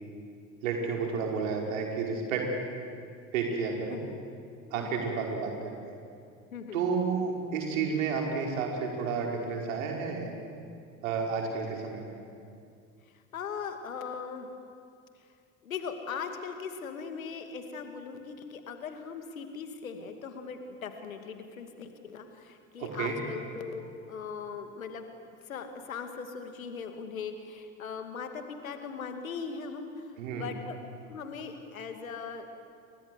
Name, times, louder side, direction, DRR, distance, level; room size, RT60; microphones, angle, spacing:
voice 1, 0.6-2.5 3.3-4.0 4.7-5.8 6.7-10.3 11.0-12.2 22.8-23.2 30.2-30.5, right 5 dB, 70° right, 1 dB, 5.4 m, -31 dB
voice 2, 6.5-6.8 13.3-14.5 15.6-25.1 25.5-32.6, left 6 dB, 80° left, 6 dB, 2.6 m, -39 dB
29.5 x 23.5 x 8.1 m, 2.3 s
figure-of-eight pair, 65°, 41 cm